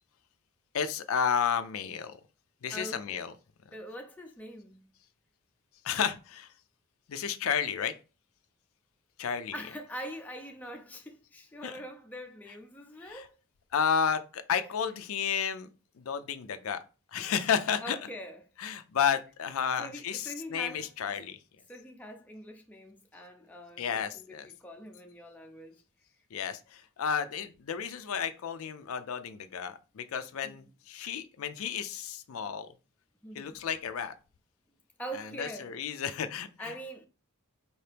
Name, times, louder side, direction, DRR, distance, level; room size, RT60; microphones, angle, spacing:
voice 1, 0.7-2.2 2.6-3.3 5.8-6.5 7.1-7.9 9.2-9.5 11.6-11.7 13.1-13.3 13.7-15.7 16.0-16.8 17.1-18.0 18.6-21.4 23.8-24.5 26.3-32.7 33.4-34.1 35.1-36.5, left 7 dB, 65° left, 0.4 m, -32 dB
voice 2, 2.7-3.2 3.7-4.9 9.2-13.3 17.8-18.5 19.8-20.9 21.7-25.8 30.4-30.6 33.2-33.6 35.0-35.8 36.6-37.1, equal, 5° left, 0.5 m, -43 dB
4.3 x 2.8 x 3.3 m
head